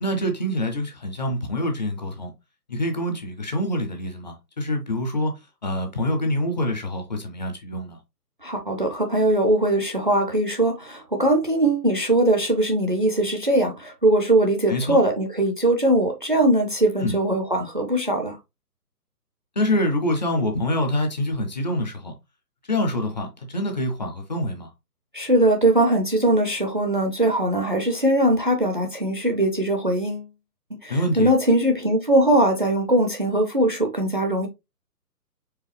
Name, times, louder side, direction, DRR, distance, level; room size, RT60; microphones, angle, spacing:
voice 1, 0.0-2.3 2.7-5.3 5.6-8.0 14.7-15.0 17.0-17.2 19.6-22.1 22.7-24.7 30.9-31.3, left 1 dB, 30° left, 0.6 m, -25 dB
voice 2, 8.4-18.4 25.1-30.3 30.7-34.5, right 1 dB, 35° right, 0.4 m, -21 dB
4.6 x 3.1 x 3.3 m
hypercardioid pair, 155°, 48 cm